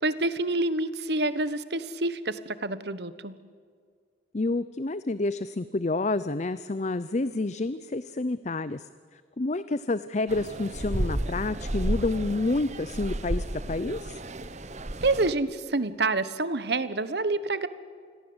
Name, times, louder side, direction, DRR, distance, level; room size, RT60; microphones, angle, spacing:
voice 1, 0.0-3.3 15.0-17.7, right 2 dB, 60° right, 14 dB, 1.3 m, -27 dB
voice 2, 4.3-14.2, left 2 dB, 40° left, 15 dB, 0.6 m, -29 dB
sound 1, 10.3-15.3, right 1 dB, 40° right, 1.2 m, -32 dB
28.5 x 21.5 x 8.0 m, 2.1 s
head